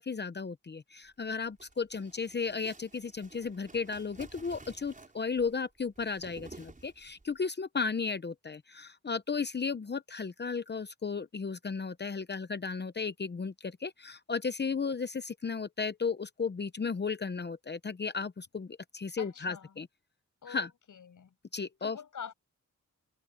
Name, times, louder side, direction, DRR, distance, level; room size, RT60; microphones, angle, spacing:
voice 1, 0.0-19.9 20.5-20.7 21.5-22.0, left 5 dB, 35° left, 0.8 m, -34 dB
sound 1, 1.3-7.3, right 3 dB, 25° right, 5.5 m, -53 dB
voice 2, 19.2-19.7 20.4-21.3 21.8-22.3, left 7 dB, 75° left, 6.9 m, -45 dB
wide cardioid pair, 115°, 31 cm